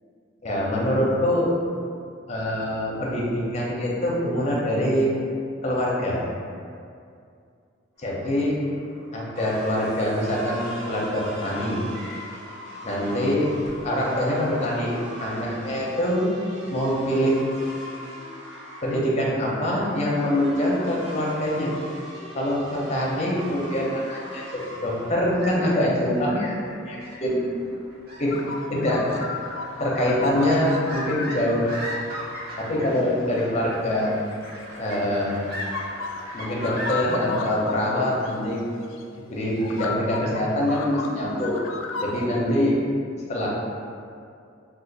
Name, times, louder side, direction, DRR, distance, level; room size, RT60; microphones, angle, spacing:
voice 1, 0.4-1.6 2.3-5.2 5.6-6.2 8.0-8.7 9.1-11.8 12.8-16.3 16.7-17.5 18.8-21.8 22.3-26.6 26.9-27.4 28.2-28.4 28.7-29.0 29.8-31.7 32.6-34.1 34.8-35.4 36.3-38.6 39.3-41.5 42.0-42.9 43.3-43.5, equal, 35° left, -5 dB, 0.6 m, -24 dB
sound 1, 8.0-25.1, left 1 dB, 80° right, 0.8 m, -40 dB
sound 2, 25.0-37.4, equal, 50° right, 0.5 m, -39 dB
sound 3, 28.3-33.5 34.2-35.2 35.6-37.8 38.3-38.4 38.9-39.0 39.6-42.3, left 4 dB, 85° left, 0.3 m, -35 dB
2.5 x 2.4 x 3.9 m, 2.3 s
head